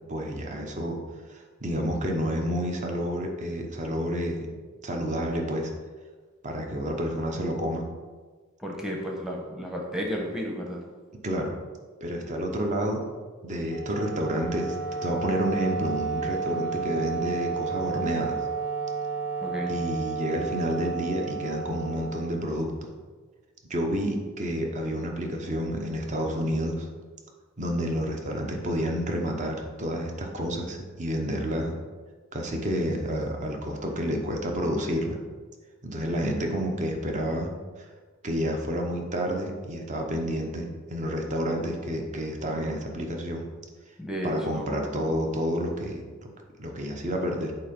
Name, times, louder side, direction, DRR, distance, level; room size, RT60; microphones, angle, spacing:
voice 1, 0.1-1.0 1.3-4.5 4.8-5.7 6.4-7.8 11.2-11.5 12.0-13.0 13.4-14.8 15.0-18.4 19.7-22.9 23.7-26.9 27.6-31.8 32.3-35.2 35.8-37.5 38.2-43.5 44.2-46.0 46.6-47.5, equal, 35° right, 2 dB, 0.8 m, -29 dB
voice 2, 8.6-10.8 19.4-19.8 44.0-44.9, equal, 5° right, -1 dB, 0.9 m, -32 dB
Wind instrument woodwind instrument, 13.6-22.9, right 5 dB, 60° right, 1.1 m, -32 dB
8.1 x 2.9 x 5.2 m, 1.4 s
head